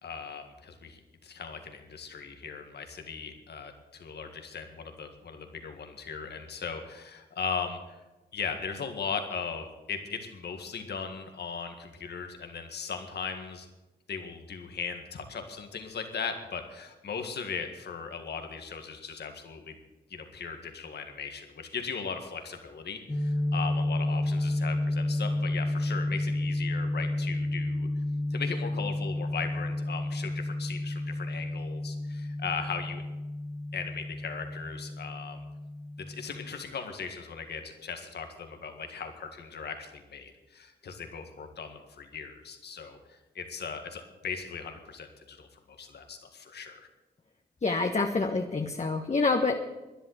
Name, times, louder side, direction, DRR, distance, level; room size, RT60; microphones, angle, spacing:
voice 1, 0.0-8.0 8.3-13.7 14.1-19.7 20.1-27.9 28.3-33.0 33.7-35.4 36.0-46.9, left 5 dB, 75° left, 6 dB, 1.9 m, -38 dB
sound 1, 23.1-36.5, left 1 dB, 15° left, 1.4 m, -31 dB
voice 2, 47.6-49.6, left 3 dB, 40° left, 3 dB, 1.4 m, -27 dB
12.5 x 11.0 x 8.2 m, 1.1 s
supercardioid pair, 45°, 17 cm